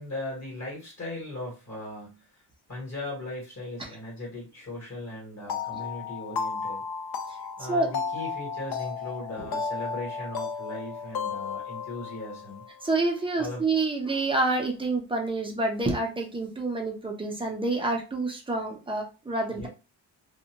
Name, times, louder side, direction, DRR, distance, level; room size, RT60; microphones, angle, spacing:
voice 1, 0.0-2.4 2.7-6.8 7.6-12.6 13.4-13.6 19.5-19.7, left 2 dB, 40° left, -4 dB, 1.4 m, -38 dB
sound 1, 5.5-12.9, left 5 dB, 60° left, 0.5 m, -34 dB
voice 2, 12.8-19.7, right 2 dB, 15° right, 0 dB, 0.5 m, -28 dB
2.5 x 2.2 x 2.8 m, 0.30 s
wide cardioid pair, 170°, 43 cm